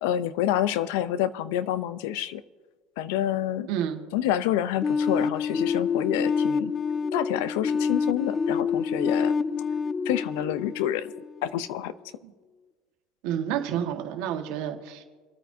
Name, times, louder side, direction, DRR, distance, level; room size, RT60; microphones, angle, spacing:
voice 1, 0.0-2.4 3.0-3.7 4.1-6.7 7.1-9.3 10.1-11.1 11.4-11.9, left 11 dB, 80° left, 15 dB, 0.6 m, -28 dB
voice 2, 3.7-4.0 12.2-12.3 13.2-15.0, right 9 dB, 70° right, 4 dB, 1.6 m, -29 dB
sound 1, 4.8-11.6, left 5 dB, 25° left, 0.3 m, -27 dB
27.0 x 9.1 x 2.7 m, 1.4 s
supercardioid pair, 125°, 0 cm